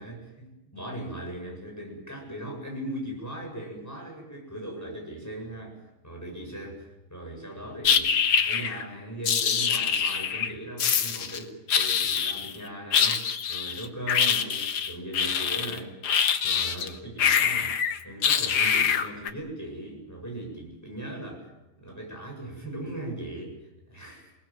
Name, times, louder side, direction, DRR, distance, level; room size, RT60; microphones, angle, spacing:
voice 1, 0.0-5.8 6.0-13.2 13.5-16.0 16.4-17.8 18.0-23.6 23.9-24.3, right 1 dB, 5° left, 0 dB, 8.0 m, -39 dB
sound 1, 7.8-8.8 9.3-10.5 10.8-11.4 11.7-12.6 12.9-16.9 17.2-19.3, left 7 dB, 80° left, 2.3 m, -24 dB
29.0 x 20.0 x 7.6 m, 1.0 s
omnidirectional pair, 2.4 m